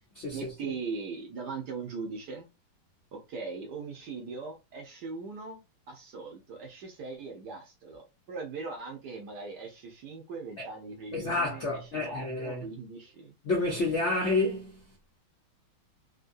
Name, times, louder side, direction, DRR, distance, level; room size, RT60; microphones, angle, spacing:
voice 1, 0.3-2.5 3.1-8.0 8.3-13.3, right 4 dB, 60° right, 1.2 m, -40 dB
voice 2, 11.1-12.6 13.4-14.8, left 2 dB, 80° left, 0.6 m, -29 dB
3.7 x 2.6 x 2.5 m
omnidirectional pair, 2.4 m